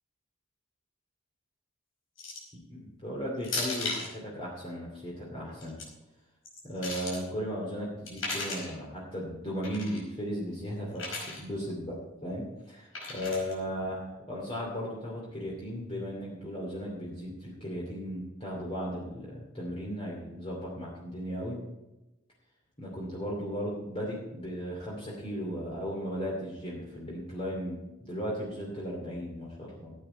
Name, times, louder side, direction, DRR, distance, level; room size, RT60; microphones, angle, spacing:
sound 1, 2.2-2.6 3.4-4.1 5.5-5.8 6.4-7.2 8.1-8.7 9.6-10.0 11.0-11.4 12.9-13.5, left 3 dB, 85° left, 5.0 m, -36 dB
voice 1, 2.7-5.8 6.6-21.6 22.8-29.9, equal, 30° left, -4 dB, 2.7 m, -36 dB
15.0 x 9.1 x 4.6 m, 0.97 s
head